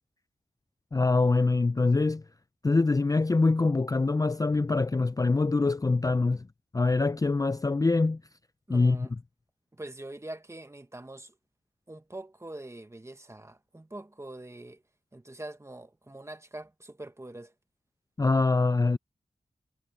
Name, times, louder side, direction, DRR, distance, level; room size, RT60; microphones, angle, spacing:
voice 1, 0.9-2.2 2.6-6.5 6.7-8.2 8.7-9.1 18.2-19.0, left 3 dB, 25° left, 0.5 m, -24 dB
voice 2, 8.7-9.1 9.7-11.4 11.9-14.8 15.1-17.5, right 1 dB, 20° right, 1.5 m, -44 dB
wide cardioid pair, 70°, 14 cm